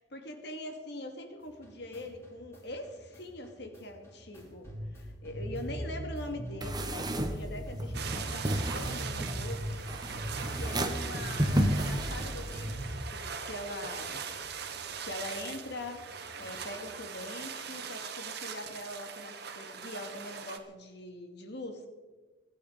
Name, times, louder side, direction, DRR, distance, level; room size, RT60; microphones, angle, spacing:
voice 1, 0.1-9.8 10.5-14.2 15.0-21.8, left 1 dB, 60° left, 5 dB, 2.3 m, -42 dB
sound 1, 1.4-13.7 14.0-16.8, equal, 15° left, 4.4 m, -41 dB
sound 2, 6.6-12.7, right 1 dB, 20° right, 1.3 m, -33 dB
sound 3, 7.9-20.6, right 6 dB, 55° right, 1.5 m, -41 dB
24.0 x 10.0 x 5.2 m, 1.3 s
head